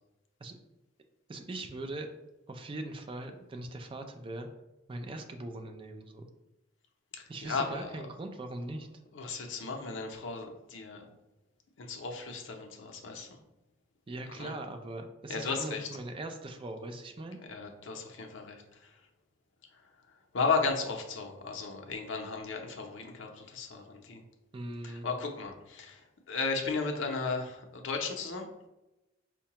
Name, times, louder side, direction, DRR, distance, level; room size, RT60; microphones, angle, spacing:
voice 1, 1.3-2.1 2.5-4.5 4.9-6.3 7.3-8.9 14.1-17.4 24.5-25.1, right 2 dB, 25° right, 6 dB, 0.4 m, -40 dB
voice 2, 7.1-7.9 9.1-11.0 11.8-13.4 14.3-14.5 15.3-15.8 17.5-18.6 20.3-24.2 24.8-26.0 26.3-28.7, left 4 dB, 80° left, 3 dB, 0.6 m, -35 dB
4.6 x 2.2 x 2.8 m, 0.98 s
head